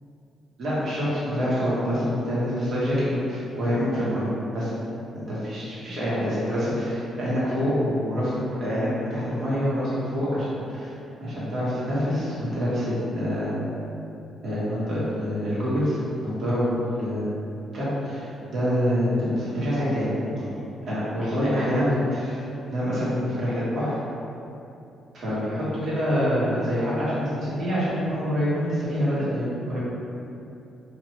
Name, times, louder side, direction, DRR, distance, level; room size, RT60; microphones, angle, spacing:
voice 1, 0.6-4.3 4.5-4.7 5.1-10.9 11.2-13.5 14.4-17.2 17.7-20.1 20.4-20.5 20.9-24.0 25.1-29.8, equal, 60° right, -10 dB, 1.3 m, -26 dB
3.0 x 2.6 x 3.1 m, 2.7 s
cardioid pair, 90°, 0 cm